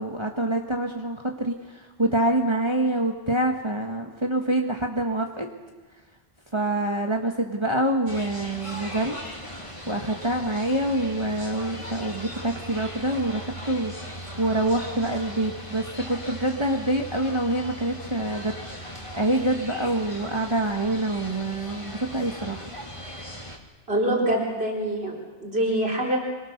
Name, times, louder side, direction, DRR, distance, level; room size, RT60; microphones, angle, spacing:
voice 1, 0.0-5.5 6.5-9.2 9.9-13.9 14.4-18.6 19.1-22.8, right 1 dB, 25° right, 2 dB, 1.7 m, -26 dB
sound 1, 8.1-23.6, equal, 30° left, 2.9 m, -39 dB
voice 2, 23.9-26.2, right 1 dB, 70° right, -2 dB, 4.5 m, -25 dB
26.5 x 23.0 x 6.7 m, 1.3 s
omnidirectional pair, 1.1 m